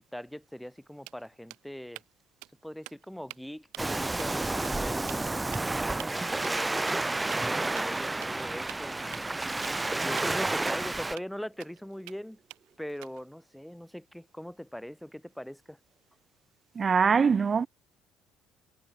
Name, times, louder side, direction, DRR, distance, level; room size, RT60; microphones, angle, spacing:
voice 1, 0.0-2.0 2.6-5.3 6.1-9.0 10.0-12.4 12.8-15.8, equal, ahead, 2.1 m, -41 dB
sound 1, 0.6-0.8 1.1-2.1 2.4-2.6 2.8-3.4 3.7-3.9 4.2-4.3 4.6-4.7 5.1-5.2 5.5-5.6 6.0-6.1 6.4-6.6 6.9-7.0 7.3-7.4 7.8-7.9 8.2-8.4 8.7-9.8 10.2-10.3 10.7-10.8 11.2-11.3 11.6-12.2 12.5-13.3, right 24 dB, 75° right, 3.7 m, -45 dB
Waves surf, 3.8-11.2, right 2 dB, 15° right, 0.6 m, -30 dB
voice 2, 16.7-17.7, right 6 dB, 35° right, 1.3 m, -23 dB
hypercardioid pair, 60°, 0 cm